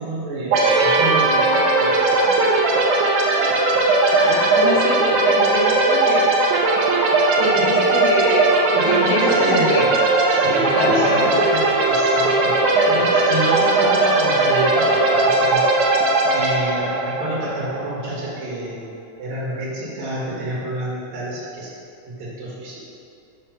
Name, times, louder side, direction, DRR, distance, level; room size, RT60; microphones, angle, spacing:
voice 1, 0.0-2.3 7.6-8.0 8.7-9.9 10.3-15.6 16.3-18.9 19.2-21.7 22.1-22.8, right 1 dB, 65° right, -7 dB, 2.9 m, -28 dB
sound 1, 0.5-18.1, right 3 dB, 90° right, 2.2 m, -18 dB
voice 2, 4.2-6.3 7.4-9.9 10.8-11.6 12.6-13.0, left 3 dB, 85° left, 0 dB, 2.3 m, -25 dB
8.3 x 3.2 x 5.7 m, 2.5 s
omnidirectional pair, 3.4 m